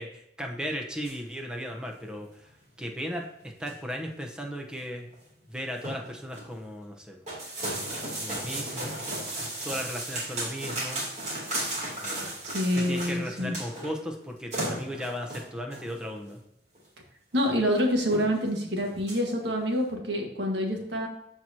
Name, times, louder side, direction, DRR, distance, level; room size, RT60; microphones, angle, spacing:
voice 1, 0.0-2.5 2.8-3.2 3.6-5.1 5.5-7.2 8.2-9.0 9.6-11.1 12.0-12.3 12.7-16.4, equal, 5° right, 1 dB, 1.0 m, -36 dB
sound 1, 1.0-1.2 1.7-1.9 2.2-2.3 2.8-2.9 3.4-3.9 4.3-4.4 4.7-4.8 5.1-5.3 5.6-6.5 7.3-13.9 14.2-14.3 14.5-15.9 16.8-16.9 17.3-17.4 17.7-17.8 18.1-18.5 18.8-19.2, right 1 dB, 40° right, 3.1 m, -35 dB
voice 2, 12.4-13.6 17.3-21.1, equal, 85° right, 1 dB, 1.8 m, -27 dB
13.5 x 4.7 x 2.9 m, 0.82 s
head